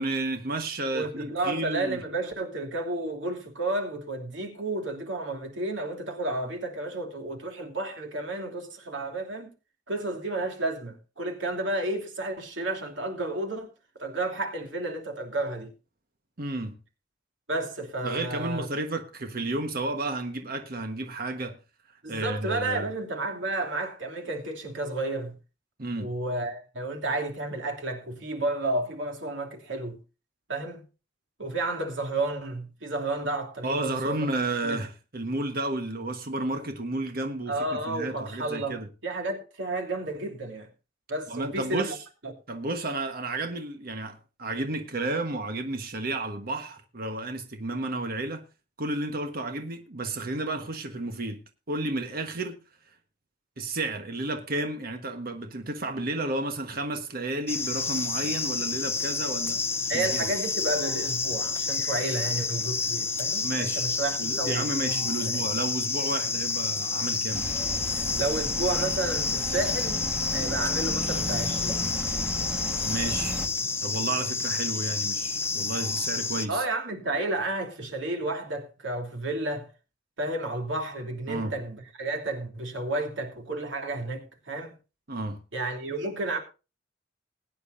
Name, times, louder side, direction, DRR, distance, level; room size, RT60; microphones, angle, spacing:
voice 1, 0.0-2.0 16.4-16.8 18.0-21.6 22.1-22.9 25.8-26.1 33.6-38.9 41.3-42.0 42.5-48.4 48.8-51.4 51.7-52.6 53.6-59.6 59.9-60.3 63.4-63.9 64.2-67.4 72.8-73.4 73.8-76.6 81.3-81.5 85.1-85.4, right 2 dB, 55° right, 1.4 m, -32 dB
voice 2, 0.9-9.5 9.9-13.7 14.0-15.7 17.5-18.7 22.0-25.3 26.0-30.0 30.5-30.8 31.4-34.3 34.6-34.8 37.5-40.7 41.1-41.9 42.2-42.3 59.9-65.4 68.2-70.0 70.3-71.9 76.5-79.7 80.2-84.7 85.5-86.4, right 2 dB, 80° right, 3.0 m, -31 dB
sound 1, 57.5-76.5, left 4 dB, 15° left, 0.6 m, -29 dB
sound 2, 67.3-73.5, equal, 5° right, 1.4 m, -35 dB
20.5 x 9.5 x 2.6 m
head